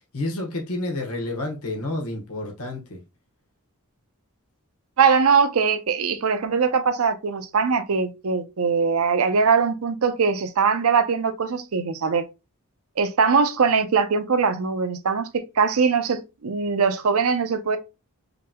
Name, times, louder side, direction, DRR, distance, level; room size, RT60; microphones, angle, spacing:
voice 1, 0.1-3.0, left 2 dB, 75° left, 1.3 m, -29 dB
voice 2, 5.0-12.3 13.0-15.3 15.6-17.8, right 5 dB, 70° right, 0.6 m, -21 dB
5.1 x 2.9 x 2.2 m
head